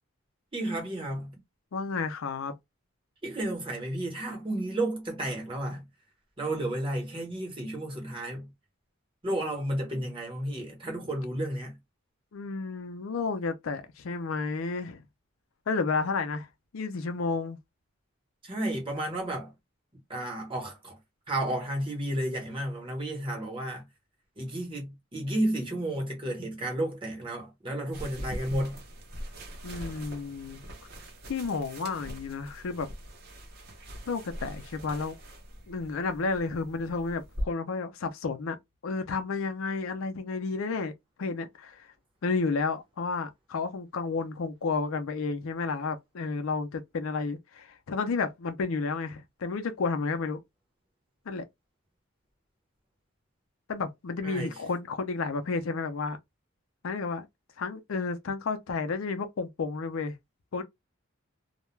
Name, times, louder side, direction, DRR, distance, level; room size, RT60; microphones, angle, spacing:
voice 1, 0.5-1.3 3.2-5.9 6.4-8.5 9.2-11.7 18.4-19.5 20.1-21.0 21.3-23.8 24.4-28.8 54.2-54.5, right 1 dB, 25° right, 1.0 m, -32 dB
voice 2, 1.7-2.5 12.3-15.0 15.7-16.5 16.7-17.6 29.6-30.6 31.3-32.9 34.1-35.2 35.7-38.6 38.8-40.9 41.2-41.9 42.2-50.4 51.3-51.4 53.7-56.2 56.8-57.3 57.6-60.1 60.5-60.6, left 4 dB, 75° left, 0.4 m, -31 dB
sound 1, 27.9-37.4, equal, 45° right, 0.7 m, -42 dB
2.3 x 2.1 x 3.1 m
head